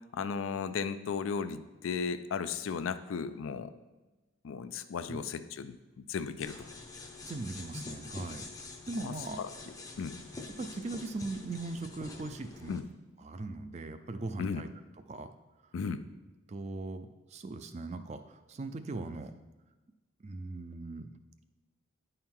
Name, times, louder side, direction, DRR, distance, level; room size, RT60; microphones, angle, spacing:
voice 1, 0.0-3.7 4.4-6.7 9.0-9.5 10.0-10.2 12.7-12.8 14.4-14.6 15.7-16.0, left 5 dB, 80° left, 11 dB, 0.4 m, -35 dB
sound 1, 6.4-12.8, left 3 dB, 15° left, 0.5 m, -46 dB
voice 2, 7.2-8.5 8.9-9.4 10.6-12.8 13.2-14.7 15.1-15.3 16.5-19.3 20.2-21.1, right 2 dB, 35° right, 9 dB, 0.4 m, -39 dB
9.7 x 4.5 x 3.7 m, 1.1 s
head